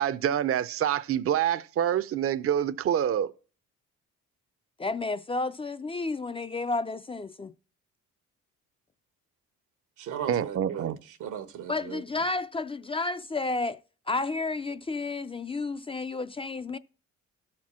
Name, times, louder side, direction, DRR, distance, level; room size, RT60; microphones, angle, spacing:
voice 1, 0.0-3.3 10.3-11.0, right 10 dB, 50° right, 0.5 m, -26 dB
voice 2, 4.8-7.5 11.7-13.8 14.1-16.8, left 3 dB, 20° left, 0.4 m, -31 dB
voice 3, 10.0-12.0, right 9 dB, 90° right, 1.2 m, -37 dB
12.5 x 4.5 x 6.1 m
cardioid pair, 90°, 30 cm